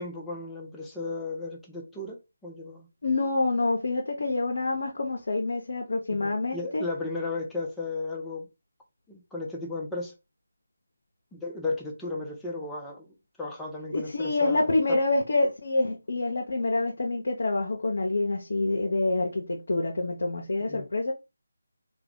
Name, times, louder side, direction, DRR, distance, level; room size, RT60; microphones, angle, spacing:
voice 1, 0.0-2.9 6.1-8.5 9.1-10.1 11.3-15.0 20.7-20.9, left 3 dB, 5° left, 0.7 m, -35 dB
voice 2, 3.0-6.8 13.9-21.1, left 2 dB, 65° left, 0.8 m, -27 dB
3.6 x 2.3 x 3.5 m
figure-of-eight pair, 165°, 0 cm